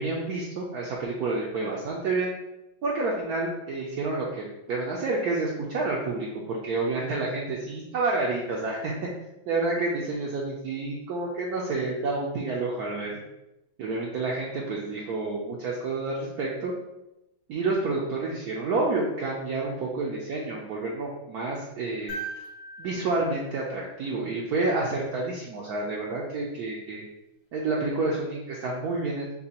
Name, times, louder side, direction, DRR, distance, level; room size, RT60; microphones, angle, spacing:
voice 1, 0.0-2.3 2.8-9.1 9.5-13.2 13.8-16.7 17.5-22.2 22.8-27.1 27.5-29.3, right 3 dB, 70° right, -3 dB, 1.0 m, -29 dB
sound 1, 22.1-24.4 26.4-26.5, right 3 dB, 80° left, 2.2 m, -40 dB
6.7 x 2.3 x 2.8 m, 0.92 s
omnidirectional pair, 2.1 m